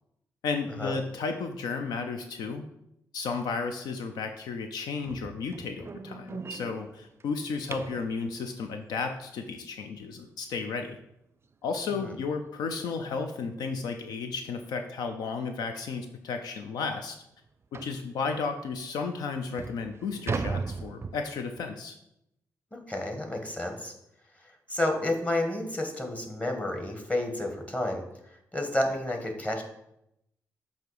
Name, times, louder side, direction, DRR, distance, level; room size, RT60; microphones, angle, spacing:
voice 1, 0.4-2.6 3.1-11.0 11.6-17.2 17.7-22.0, left 4 dB, 80° left, 6 dB, 0.5 m, -33 dB
sound 1, 5.0-8.1 10.9-11.0 11.5-11.7 12.1-12.2 12.7-12.8 13.8-14.0 14.4-14.5 15.2-15.3 15.6-15.7 16.2-16.3 17.7-18.0 18.8-18.9 19.4-21.6, right 4 dB, 40° right, 0.4 m, -37 dB
voice 2, 22.7-23.9 24.4-29.6, left 1 dB, 20° left, 3 dB, 1.6 m, -31 dB
7.5 x 2.8 x 4.8 m, 0.80 s
supercardioid pair, 50°, 7 cm